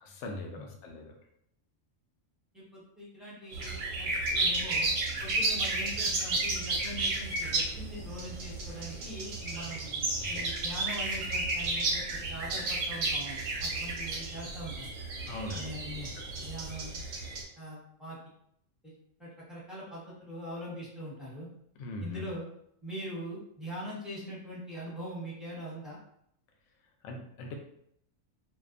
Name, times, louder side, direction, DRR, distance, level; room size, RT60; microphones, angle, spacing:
voice 1, 0.0-1.1 5.5-5.6 10.2-10.5 15.3-15.8 16.2-16.4 21.8-22.2 27.0-27.5, left 2 dB, 70° left, 2 dB, 0.8 m, -41 dB
voice 2, 2.5-4.9 5.2-14.9 15.5-16.1 16.4-17.0 17.6-18.2 18.8-18.9 19.2-21.5 22.0-22.4 22.8-26.0, equal, ahead, -8 dB, 0.8 m, -42 dB
sound 1, 3.5-17.4, right 2 dB, 90° right, 1.0 m, -32 dB
2.6 x 2.2 x 2.4 m, 0.71 s
omnidirectional pair, 1.3 m